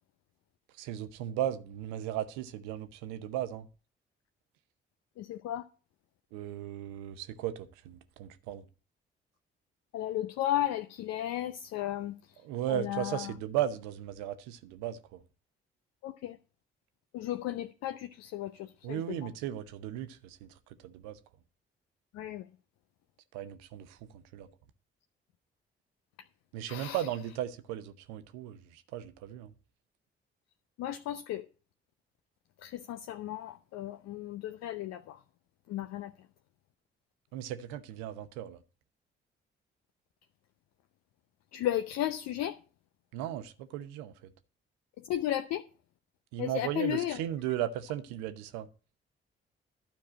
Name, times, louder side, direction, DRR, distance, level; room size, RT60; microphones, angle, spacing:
voice 1, 0.7-3.7 6.3-8.7 12.4-15.2 18.8-21.2 23.3-24.5 26.5-29.5 37.3-38.6 43.1-44.3 46.3-48.7, right 11 dB, 70° right, 0.9 m, -36 dB
voice 2, 5.2-5.7 9.9-12.2 12.7-13.3 16.0-16.4 17.1-19.2 22.1-22.5 26.7-27.0 30.8-31.5 32.6-35.2 35.7-36.1 41.5-42.6 45.0-45.6 46.4-47.2, left 12 dB, 60° left, 0.7 m, -34 dB
12.0 x 4.7 x 7.4 m
figure-of-eight pair, 40°, 29 cm